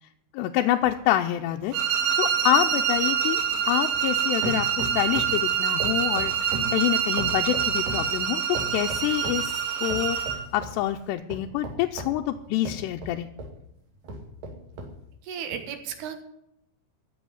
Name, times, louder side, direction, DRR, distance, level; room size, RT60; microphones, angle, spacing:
voice 1, 0.3-1.7 2.2-3.4 3.7-9.5 9.8-10.2 10.5-13.3, left 13 dB, 85° left, 3 dB, 2.8 m, -26 dB
sound 1, 0.8-4.2 4.4-5.4 5.8-8.1 8.5-9.5 9.9-10.8 11.3-13.6 14.0-15.0 15.5-15.6, right 1 dB, 55° right, 4.0 m, -37 dB
sound 2, 1.7-10.5, right 8 dB, 90° right, 4.4 m, -26 dB
voice 2, 15.2-16.2, right 8 dB, 70° right, 8 dB, 3.5 m, -34 dB
15.5 x 7.2 x 9.9 m, 0.79 s
omnidirectional pair, 4.9 m